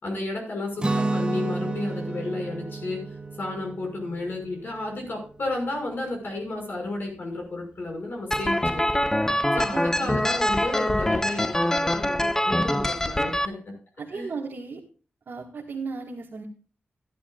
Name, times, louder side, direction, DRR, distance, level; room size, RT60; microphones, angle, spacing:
voice 1, 0.0-3.1 3.4-9.0 9.6-13.7 14.1-14.3, left 2 dB, 60° left, 1 dB, 5.9 m, -32 dB
Guitar, 0.8-6.6, right 2 dB, 25° right, 0.9 m, -32 dB
sound 1, 8.3-13.5, left 1 dB, 10° left, 0.5 m, -24 dB
voice 2, 9.5-10.2 14.0-14.8 15.3-16.4, right 4 dB, 70° right, -2 dB, 1.9 m, -35 dB
16.0 x 11.5 x 2.4 m, 0.37 s
wide cardioid pair, 140°, 4 cm